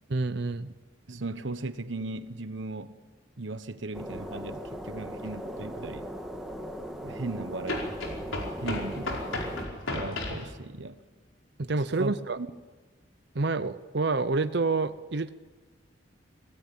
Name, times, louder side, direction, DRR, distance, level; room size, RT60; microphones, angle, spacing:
voice 1, 0.1-0.7 11.6-12.4 13.3-15.3, right 3 dB, 55° right, 0.7 m, -28 dB
voice 2, 1.1-2.9 3.4-6.1 7.0-7.9 8.6-9.3 9.9-11.0 12.0-12.5, right 2 dB, 70° right, 1.2 m, -37 dB
sound 1, 3.9-9.7, equal, ahead, 2.0 m, -39 dB
sound 2, 5.2-5.3 7.7-10.5, left 1 dB, 90° left, 4.9 m, -34 dB
24.5 x 17.5 x 8.8 m
head